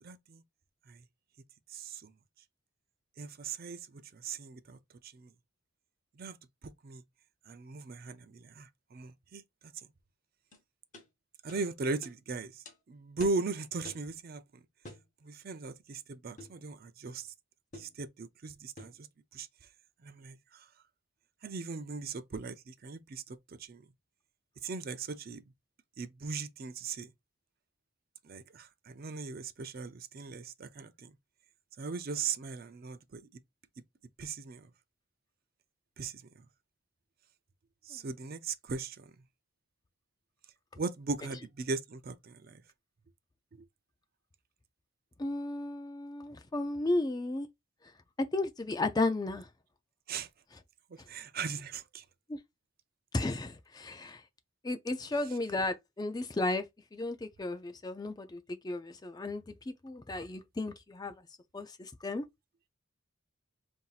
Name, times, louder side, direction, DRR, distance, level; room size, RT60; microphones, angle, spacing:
voice 1, 0.0-0.4 0.9-1.0 1.7-2.1 3.2-5.3 6.2-6.4 6.6-7.0 7.5-9.9 11.4-14.6 15.2-17.3 17.7-19.1 19.3-19.5 20.0-20.7 21.4-23.9 24.6-25.4 26.0-27.1 28.2-31.2 31.8-33.2 34.2-34.7 36.0-36.5 37.8-39.1 40.8-42.6 43.6-43.7 50.1-50.3 50.9-52.1, right 4 dB, 45° right, 0.4 m, -39 dB
sound 1, 10.5-10.6 10.9-11.1 11.5-11.6 12.0-12.2 12.7-12.8 13.2-13.4 13.8-14.1 14.8-15.1 16.4-16.6 17.7-18.0 18.8-19.0, left 1 dB, 35° left, 1.0 m, -49 dB
voice 2, 45.2-47.5 48.2-49.5 52.3-52.4 53.1-54.2 54.6-56.6 56.9-61.1 61.5-62.3, left 2 dB, 20° left, 0.4 m, -34 dB
5.6 x 2.7 x 2.4 m
head